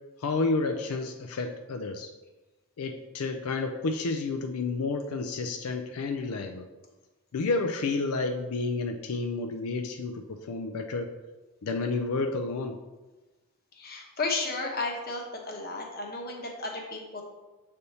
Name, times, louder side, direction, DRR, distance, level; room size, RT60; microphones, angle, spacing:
voice 1, 0.2-2.1 2.8-6.7 7.3-11.1 11.6-12.8, left 3 dB, 90° left, 4 dB, 0.4 m, -30 dB
voice 2, 13.7-17.2, left 3 dB, 45° left, 1 dB, 1.0 m, -33 dB
6.7 x 3.5 x 4.1 m, 1.2 s
head